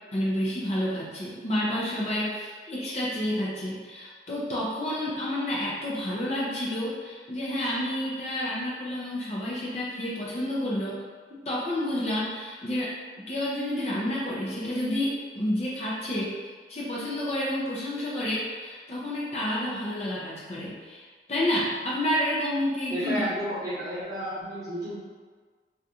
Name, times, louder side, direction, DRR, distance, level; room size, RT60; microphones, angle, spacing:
voice 1, 0.1-11.0 11.5-12.9 13.3-16.3 16.7-23.2, left 1 dB, 35° left, -6 dB, 0.5 m, -29 dB
voice 2, 22.9-25.0, equal, 20° right, -10 dB, 1.0 m, -32 dB
3.5 x 2.4 x 2.8 m, 1.5 s
head